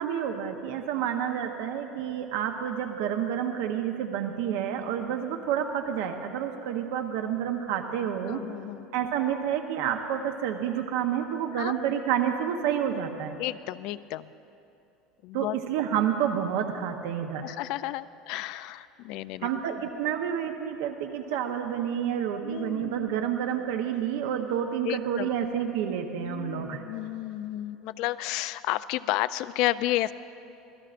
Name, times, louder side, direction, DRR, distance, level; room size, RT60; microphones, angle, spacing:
voice 1, 0.0-8.4 8.9-13.4 15.3-17.5 19.4-26.8, right 9 dB, 80° right, 5 dB, 0.9 m, -29 dB
voice 2, 8.2-8.9 11.5-11.7 13.4-14.3 15.2-15.6 17.4-19.5 22.4-23.2 24.8-25.3 26.2-30.1, left 16 dB, 65° left, 15 dB, 0.4 m, -32 dB
25.5 x 17.0 x 2.5 m, 2.8 s
supercardioid pair, 135°, 0 cm